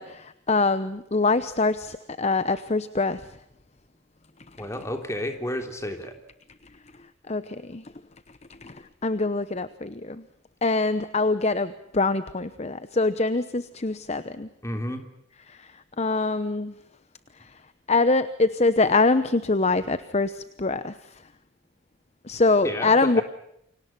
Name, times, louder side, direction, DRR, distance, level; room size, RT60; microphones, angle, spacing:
voice 1, 0.0-3.2 7.3-7.8 8.6-10.2 10.6-14.5 15.5-15.7 16.0-16.7 17.9-21.0 22.2-23.2, left 3 dB, 30° left, 13 dB, 0.9 m, -24 dB
voice 2, 4.6-6.1 14.6-15.0 22.6-23.2, left 1 dB, 15° left, 6 dB, 3.2 m, -31 dB
29.0 x 25.0 x 5.9 m, 0.77 s
head